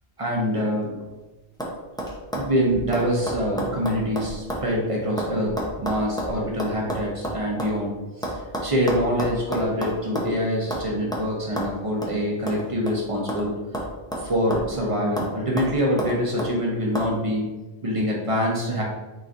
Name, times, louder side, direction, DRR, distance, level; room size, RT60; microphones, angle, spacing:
voice 1, 0.2-1.0 2.3-8.3 8.6-13.5 14.2-17.5 17.8-18.8, equal, 30° right, -2 dB, 0.9 m, -25 dB
sound 1, 0.8-1.2 1.6-1.7 2.0-4.7 4.9-7.7 8.2-10.4 10.7-10.9 11.1-11.3 11.6-11.7 12.0-12.1 12.5-13.5 13.7-14.8 15.2-15.3 15.6-16.5 16.9-17.1, equal, 5° left, 0.5 m, -30 dB
4.1 x 4.0 x 2.5 m, 1.1 s
omnidirectional pair, 1.1 m